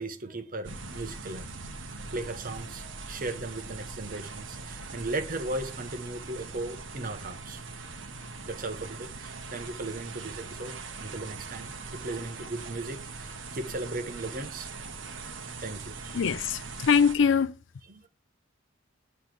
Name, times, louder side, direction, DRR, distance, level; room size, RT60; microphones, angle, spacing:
voice 1, 0.0-1.5 2.1-7.6 8.4-14.7 15.5-16.2 18.0-18.1, right 2 dB, 45° right, 1.0 m, -37 dB
sound 1, 0.6-17.2, right 4 dB, 75° right, 1.0 m, -41 dB
voice 2, 16.1-17.6, left 6 dB, 70° left, 0.4 m, -23 dB
8.6 x 3.3 x 6.1 m
head